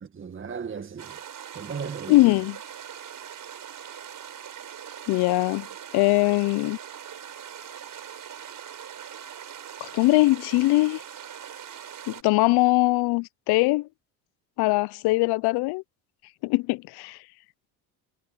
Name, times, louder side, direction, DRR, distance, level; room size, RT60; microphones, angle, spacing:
voice 1, 0.0-1.2 1.5-2.4, right 6 dB, 30° right, 1.8 m, -36 dB
sound 1, 1.0-12.2, right 9 dB, 50° right, 4.8 m, -41 dB
voice 2, 2.1-2.6 5.1-5.7 5.9-6.8 9.8-11.0 12.1-13.9 14.6-15.8 16.4-17.2, left 21 dB, 65° left, 0.6 m, -21 dB
supercardioid pair, 80°, 42 cm